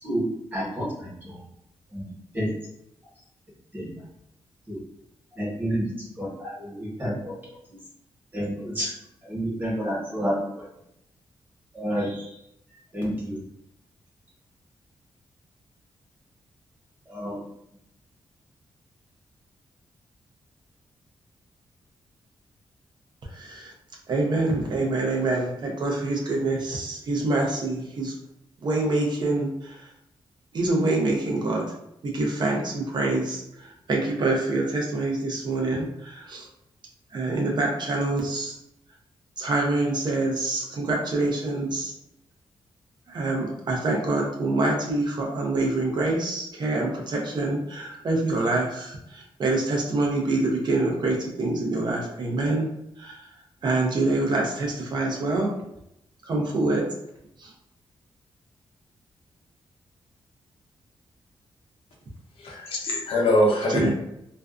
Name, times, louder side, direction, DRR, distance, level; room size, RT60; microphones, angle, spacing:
voice 1, 0.0-1.4 1.9-2.0 2.3-2.5 3.7-3.9 4.7-4.8 5.3-7.3 8.3-8.9 9.2-10.3 11.7-12.3 12.9-13.4 17.1-17.4, equal, 20° right, -6 dB, 1.1 m, -29 dB
voice 2, 23.3-23.7 24.1-28.1 28.6-29.8 30.5-31.6 32.0-36.5 37.1-38.6 39.4-41.9 43.1-52.7 53.0-53.2 53.6-55.5 56.3-56.8 57.4-57.5 63.7-63.9, right 2 dB, 50° right, -1 dB, 0.6 m, -26 dB
voice 3, 62.4-63.9, left 1 dB, 75° left, -2 dB, 0.7 m, -22 dB
2.4 x 2.2 x 2.4 m, 0.80 s
wide cardioid pair, 145°, 10 cm